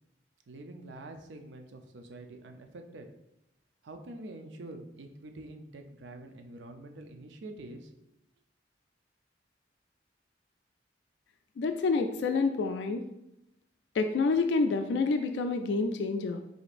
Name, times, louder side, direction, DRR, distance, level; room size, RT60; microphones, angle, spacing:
voice 1, 0.5-3.1 3.8-7.9, right 2 dB, 85° right, 5 dB, 0.5 m, -46 dB
voice 2, 11.6-13.0 13.9-16.4, left 4 dB, 75° left, 7 dB, 0.3 m, -28 dB
4.9 x 4.0 x 2.5 m, 0.84 s
head